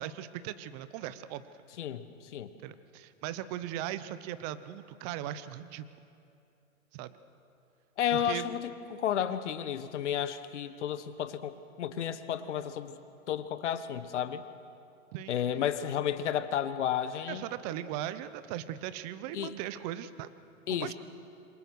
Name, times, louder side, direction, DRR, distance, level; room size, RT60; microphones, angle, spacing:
voice 1, 0.0-1.4 2.6-5.9 6.9-7.1 8.1-8.4 15.1-15.4 17.3-20.3 20.7-20.9, right 12 dB, 30° right, 14 dB, 0.9 m, -38 dB
voice 2, 1.8-2.5 8.0-13.0 13.3-14.4 15.3-17.4 19.3-19.6 20.7-20.9, left 9 dB, 55° left, 11 dB, 1.5 m, -32 dB
27.0 x 23.0 x 6.4 m, 2.7 s
hypercardioid pair, 130°, 41 cm